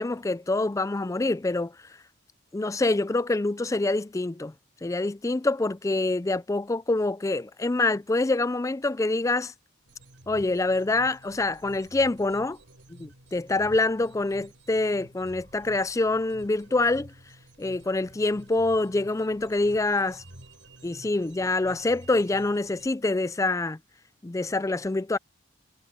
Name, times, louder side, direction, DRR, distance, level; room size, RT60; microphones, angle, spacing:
voice 1, 0.0-1.7 2.5-4.5 4.8-9.5 10.3-12.6 12.9-17.1 17.6-20.2 20.8-23.8 24.2-25.2, left 2 dB, 15° left, 0.3 m, -26 dB
sound 1, 9.9-22.9, right 1 dB, 60° right, 6.2 m, -51 dB
head